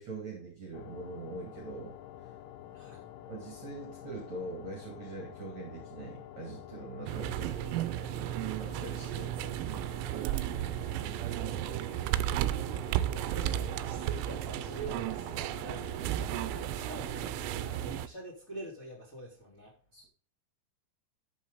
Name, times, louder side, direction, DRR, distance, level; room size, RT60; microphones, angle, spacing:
voice 1, 0.0-1.9 3.3-7.6 8.6-9.3 16.9-17.1 19.9-20.1, right 2 dB, 45° right, 2.8 m, -42 dB
sound 1, 0.7-18.1, left 11 dB, 85° left, 2.3 m, -49 dB
voice 2, 2.7-3.1 13.2-19.7, right 2 dB, 20° left, 3.2 m, -46 dB
sound 2, 7.1-18.1, right 13 dB, 85° right, 3.3 m, -34 dB
12.5 x 7.2 x 4.0 m
omnidirectional pair, 6.0 m